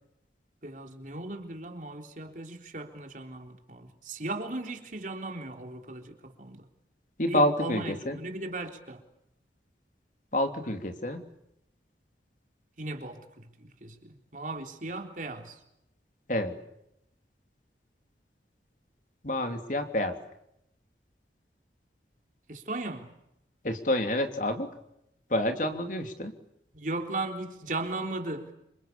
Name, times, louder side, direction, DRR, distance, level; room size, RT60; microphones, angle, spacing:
voice 1, 0.6-6.7 7.3-9.0 12.8-15.6 22.5-23.1 26.7-28.5, right 2 dB, 45° right, 3.8 m, -37 dB
voice 2, 7.2-8.2 10.3-11.2 16.3-16.5 19.2-20.2 23.6-24.7 25.3-26.3, left 1 dB, 45° left, 3.0 m, -28 dB
29.0 x 27.5 x 7.0 m
head